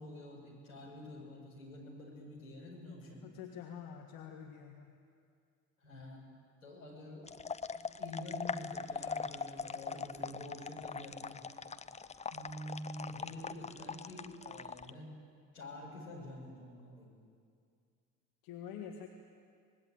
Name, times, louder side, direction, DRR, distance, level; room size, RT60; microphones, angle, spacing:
voice 1, 0.0-3.2 5.8-6.2 6.6-7.2 8.0-11.4 12.3-15.1 15.5-17.1, left 1 dB, 80° left, -4 dB, 6.2 m, -47 dB
voice 2, 3.2-4.9 18.4-19.1, left 8 dB, 60° left, 3 dB, 1.7 m, -46 dB
sound 1, 7.2-14.9, left 5 dB, 15° left, 0.8 m, -41 dB
25.0 x 20.5 x 9.0 m, 2.3 s
figure-of-eight pair, 50°, 41 cm